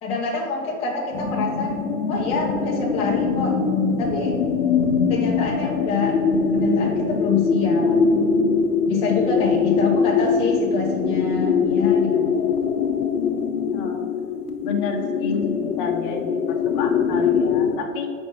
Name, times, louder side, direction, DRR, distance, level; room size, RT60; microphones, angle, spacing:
voice 1, 0.0-1.7 2.1-3.5 4.0-4.4 5.1-8.0 8.9-12.5, left 4 dB, 15° left, -4 dB, 0.6 m, -26 dB
sound 1, 1.1-17.8, left 5 dB, 85° left, 0.8 m, -22 dB
voice 2, 13.7-14.1 14.6-18.1, left 4 dB, 35° left, 3 dB, 1.0 m, -30 dB
5.2 x 4.4 x 5.9 m, 2.2 s
hypercardioid pair, 125°, 44 cm